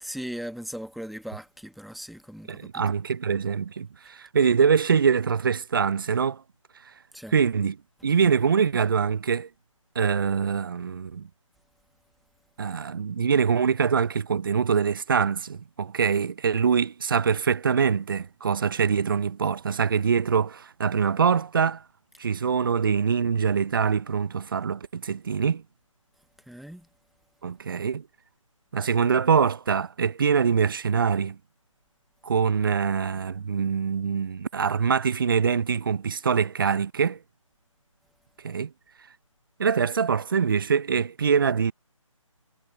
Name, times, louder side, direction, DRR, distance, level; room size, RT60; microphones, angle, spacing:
voice 1, 0.0-2.8 7.1-7.3 26.5-26.9, equal, ahead, 1.3 m, -38 dB
voice 2, 2.5-6.4 7.3-7.8 8.0-9.5 10.0-11.3 12.6-21.8 22.2-25.6 27.4-28.0 28.7-31.4 32.2-37.2 38.4-38.7 39.6-41.7, right 6 dB, 40° right, 0.7 m, -24 dB
figure-of-eight pair, 155°, 17 cm